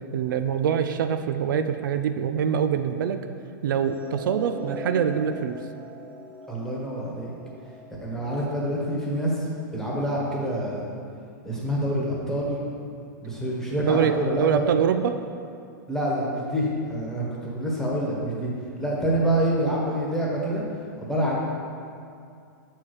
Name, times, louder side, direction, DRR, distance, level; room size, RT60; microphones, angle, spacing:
voice 1, 0.1-3.2 3.6-5.6 13.9-15.2, right 8 dB, 75° right, 8 dB, 0.4 m, -24 dB
sound 1, 3.8-10.1, right 1 dB, 10° right, 0.6 m, -42 dB
voice 2, 6.5-7.3 8.0-9.5 9.7-10.9 11.4-12.6 13.2-14.6 15.9-18.5 18.8-20.6 21.0-21.4, right 1 dB, 5° left, -5 dB, 1.3 m, -26 dB
7.2 x 4.5 x 4.9 m, 2.4 s
supercardioid pair, 145°, 11 cm